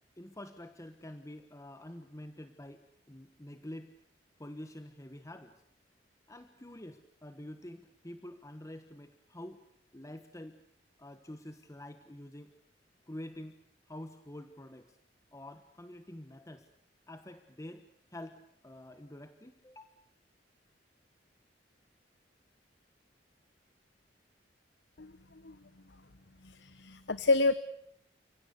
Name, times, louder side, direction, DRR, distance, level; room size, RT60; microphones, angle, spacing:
voice 1, 0.2-3.9 4.4-5.5 6.3-9.6 9.9-10.6 11.0-12.5 13.1-13.6 13.9-15.0 15.3-16.7 17.1-19.9, left 1 dB, 20° left, 9 dB, 1.3 m, -47 dB
voice 2, 26.4-27.5, left 3 dB, 70° left, 15 dB, 1.0 m, -28 dB
30.0 x 17.0 x 8.2 m, 0.73 s
head